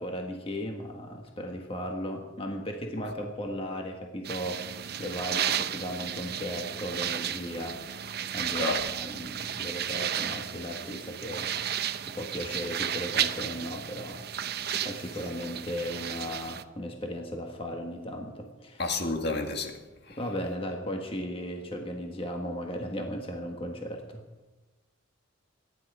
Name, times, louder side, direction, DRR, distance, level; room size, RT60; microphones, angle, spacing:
voice 1, 0.0-7.8 8.3-11.5 12.0-18.9 20.1-24.2, equal, 25° left, 1.5 m, -36 dB
sound 1, 4.2-16.6, right 9 dB, 50° right, 0.7 m, -33 dB
voice 2, 18.8-19.7 20.1-20.2, left 2 dB, 55° left, 1.9 m, -30 dB
24.0 x 11.0 x 4.9 m
head